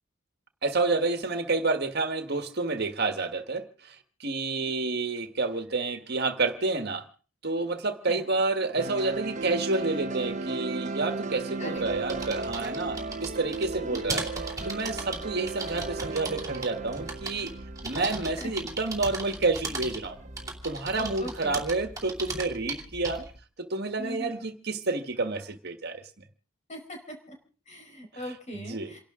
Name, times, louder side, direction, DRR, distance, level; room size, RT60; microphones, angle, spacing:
voice 1, 0.6-7.0 7.4-14.3 14.6-17.5 17.8-20.2 20.6-23.3 23.6-26.0 28.5-28.9, right 3 dB, 55° right, 8 dB, 1.6 m, -29 dB
sound 1, 8.8-20.9, right 3 dB, 35° right, 0.9 m, -36 dB
sound 2, 11.8-23.4, right 3 dB, 15° right, 3.1 m, -38 dB
voice 2, 21.0-21.6 24.0-24.4 26.7-27.3 27.7-29.0, equal, 35° left, 3 dB, 5.0 m, -40 dB
28.5 x 12.0 x 3.8 m, 0.38 s
head